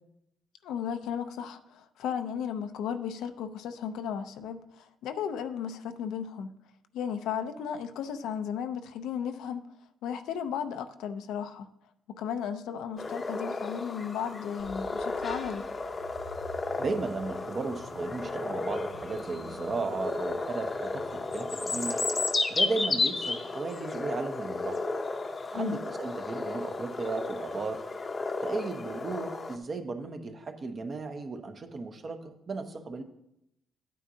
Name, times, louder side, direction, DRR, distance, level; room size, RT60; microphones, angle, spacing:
voice 1, 0.6-6.5 6.9-9.6 10.0-11.7 12.1-15.7 25.5-25.8, left 8 dB, 85° left, 8 dB, 0.6 m, -35 dB
sound 1, 13.0-29.6, left 3 dB, 30° left, 0.7 m, -33 dB
sound 2, 14.6-21.5, right 1 dB, 90° right, 1.8 m, -51 dB
voice 2, 16.8-22.0 22.5-24.8 25.5-27.8 28.4-33.0, right 3 dB, 40° right, 6 dB, 1.0 m, -35 dB
11.0 x 9.2 x 2.8 m, 0.81 s
cardioid pair, 90°, 0 cm